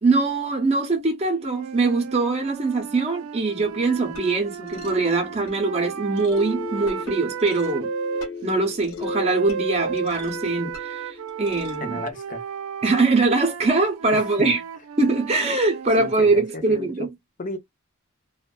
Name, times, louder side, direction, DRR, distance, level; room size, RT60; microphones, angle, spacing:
voice 1, 0.0-7.9 8.4-12.0 12.8-14.6 15.0-17.1, right 3 dB, 30° right, 0.6 m, -22 dB
sound 1, 1.4-8.3 9.0-16.2, right 7 dB, 80° right, 0.3 m, -34 dB
sound 2, 3.6-12.1, left 4 dB, 75° left, 1.0 m, -38 dB
voice 2, 11.8-12.5 14.1-14.5 16.0-17.1 17.4-17.6, left 2 dB, 40° left, 0.5 m, -34 dB
2.5 x 2.2 x 2.2 m
head